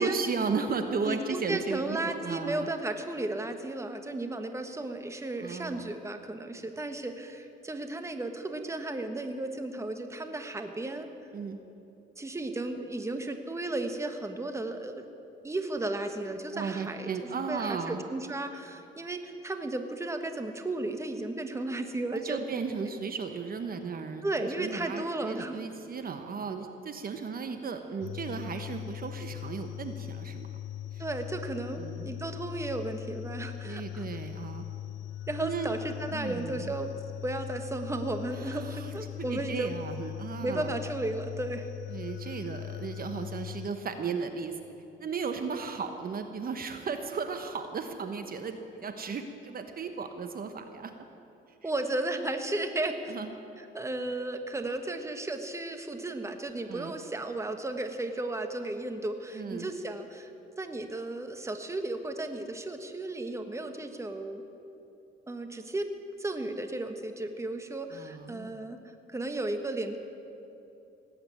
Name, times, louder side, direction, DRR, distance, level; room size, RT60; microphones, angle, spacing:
voice 1, 0.0-2.7 5.4-6.0 11.3-11.6 16.5-18.0 22.1-24.2 24.6-30.5 30.9-31.0 31.7-32.1 33.6-34.6 35.4-35.7 36.1-36.7 38.4-40.7 41.9-44.6 45.0-50.9 51.6-51.7 53.1-53.3 56.7-56.9 59.3-59.7 67.9-68.5, right 5 dB, 50° right, 7 dB, 1.1 m, -35 dB
voice 2, 1.0-11.1 12.2-15.1 15.4-22.4 24.2-25.6 31.0-34.1 35.3-36.9 37.2-39.7 40.4-41.7 51.6-53.1 53.6-60.3 60.6-64.4 65.3-65.9 66.2-68.8 69.1-70.0, right 2 dB, 15° right, 6 dB, 1.3 m, -34 dB
sound 1, 28.0-43.7, left 12 dB, 75° left, 0.5 m, -40 dB
18.0 x 8.8 x 8.6 m, 3.0 s
cardioid pair, 90°, 20 cm